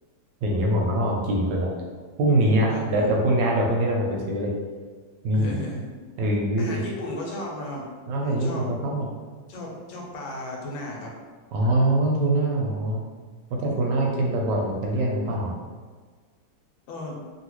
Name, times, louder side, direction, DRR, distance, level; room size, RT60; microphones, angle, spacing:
voice 1, 0.4-1.7 2.2-4.5 5.2-5.6 6.2-6.8 8.1-9.1 11.5-13.0 13.5-15.5, right 1 dB, 75° right, -1 dB, 1.2 m, -23 dB
voice 2, 2.7-3.2 5.3-5.9 6.6-7.9 8.2-8.7 9.5-11.1 16.9-17.2, left 1 dB, 90° left, -1 dB, 1.4 m, -34 dB
2.8 x 2.7 x 3.0 m, 1.5 s
omnidirectional pair, 2.1 m